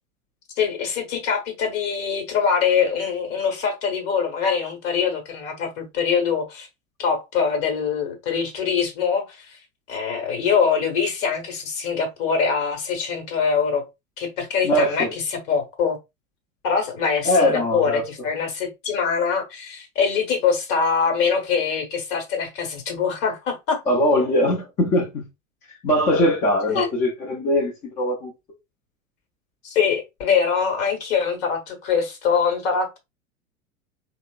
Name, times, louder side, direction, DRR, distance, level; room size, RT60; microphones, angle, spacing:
voice 1, 0.6-6.7 7.0-9.6 9.9-13.8 14.2-16.0 16.6-23.8 26.7-26.9 29.6-33.0, left 6 dB, 45° left, 1.0 m, -23 dB
voice 2, 14.6-15.1 17.3-18.0 23.9-25.3 25.8-28.3, left 1 dB, 20° left, 0.6 m, -21 dB
2.9 x 2.0 x 2.3 m
figure-of-eight pair, 90°, 39 cm